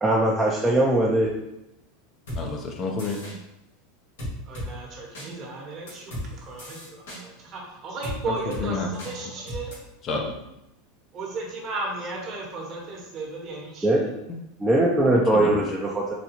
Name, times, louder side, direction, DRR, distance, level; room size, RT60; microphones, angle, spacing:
voice 1, 0.0-1.3 13.8-14.1 14.6-16.1, right 1 dB, 10° right, -5 dB, 0.5 m, -21 dB
sound 1, 2.3-2.4 3.0-3.3 4.2-4.7 5.1-5.3 5.9-6.3 6.6-7.2 8.0-8.2 8.5-8.6 9.0-9.1 9.5-9.7, left 1 dB, 85° left, 1.5 m, -34 dB
voice 2, 2.4-3.2 8.3-8.9 10.0-10.3 15.1-15.6, left 3 dB, 40° left, 2 dB, 0.6 m, -29 dB
voice 3, 4.5-9.8 11.1-14.1, right 3 dB, 45° right, -1 dB, 1.0 m, -35 dB
4.1 x 2.3 x 2.9 m, 0.89 s
supercardioid pair, 110°, 0 cm